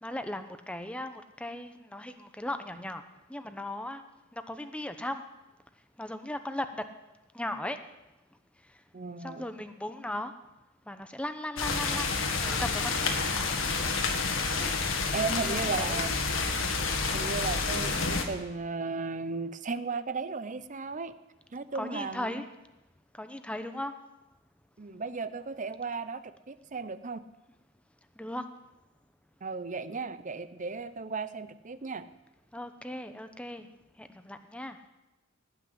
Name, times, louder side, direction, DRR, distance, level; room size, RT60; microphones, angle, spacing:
voice 1, 0.0-3.0 3.3-4.0 4.3-5.2 6.0-6.8 7.3-7.8 9.2-10.3 10.9-12.1 12.4-13.1 13.5-13.9 14.6-16.0 21.7-22.4 23.2-23.9 28.2-28.4 32.5-33.7 34.0-34.8, left 1 dB, 5° left, 8 dB, 0.9 m, -37 dB
voice 2, 8.9-9.5 15.1-16.2 17.1-21.2 21.5-22.4 24.8-26.2 26.5-27.2 29.4-32.0, right 4 dB, 40° right, 13 dB, 0.7 m, -35 dB
sound 1, 11.6-18.2, left 4 dB, 70° left, 1.7 m, -29 dB
18.0 x 6.0 x 9.5 m, 1.0 s
head